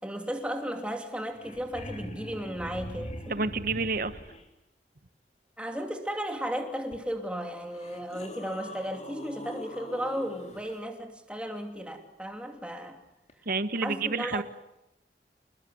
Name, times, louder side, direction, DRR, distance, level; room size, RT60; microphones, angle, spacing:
voice 1, 0.0-3.3 5.6-13.0 13.8-14.4, equal, 5° right, 2.8 m, -35 dB
sound 1, 1.0-1.1 1.3-4.4 6.9-7.0 7.7-10.8 13.3-13.4, equal, 40° left, 3.9 m, -42 dB
voice 2, 3.3-4.2 13.5-14.4, right 3 dB, 55° right, 1.2 m, -29 dB
28.5 x 21.0 x 9.6 m
head